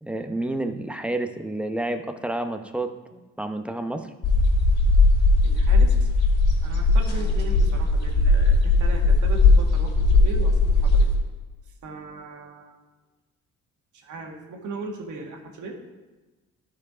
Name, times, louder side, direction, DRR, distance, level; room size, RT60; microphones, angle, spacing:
voice 1, 0.0-4.1, right 2 dB, 5° right, 6 dB, 0.8 m, -30 dB
sound 1, 4.2-11.2, left 2 dB, 55° left, 2.7 m, -18 dB
voice 2, 5.4-6.1 6.6-11.1 11.8-12.8 13.9-15.8, right 3 dB, 75° right, 1 dB, 1.8 m, -38 dB
12.5 x 4.9 x 4.9 m, 1.2 s
cardioid pair, 90°, 30 cm